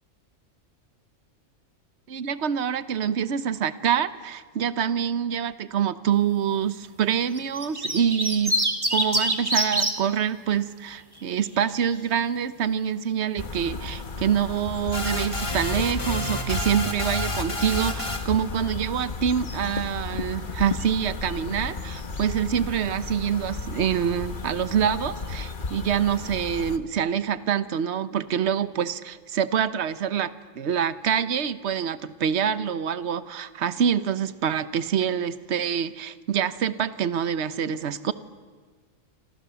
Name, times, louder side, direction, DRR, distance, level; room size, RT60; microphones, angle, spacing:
voice 1, 2.1-8.6 8.9-38.1, right 8 dB, 60° right, 13 dB, 1.2 m, -26 dB
sound 1, 7.4-9.9 11.2-11.6, right 1 dB, 15° right, 2.1 m, -24 dB
sound 2, 13.4-26.8, left 4 dB, 40° left, 1.3 m, -34 dB
sound 3, 14.9-18.4, left 1 dB, 25° left, 1.8 m, -30 dB
27.5 x 27.0 x 7.0 m, 1.5 s
omnidirectional pair, 1.3 m